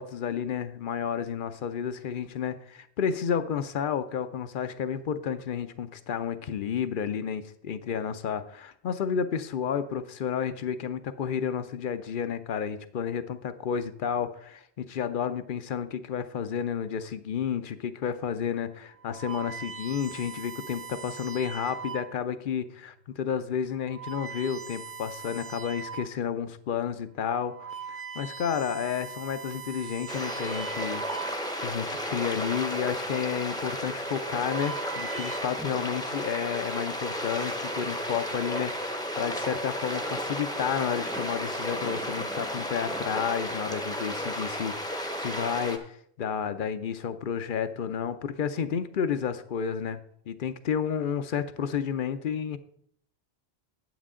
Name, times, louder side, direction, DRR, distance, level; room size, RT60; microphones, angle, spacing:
voice 1, 0.0-31.0 31.6-50.0 50.3-52.6, left 7 dB, 60° left, 12 dB, 0.7 m, -31 dB
sound 1, 18.0-18.3 18.9-22.3 23.0-23.2 23.8-26.2 26.7-26.8 27.3-31.8 32.8-33.2 34.1-35.4, right 6 dB, 60° right, 0.9 m, -41 dB
sound 2, 30.1-45.8, equal, 5° left, 0.7 m, -33 dB
9.2 x 8.1 x 3.7 m, 0.66 s
omnidirectional pair, 1.1 m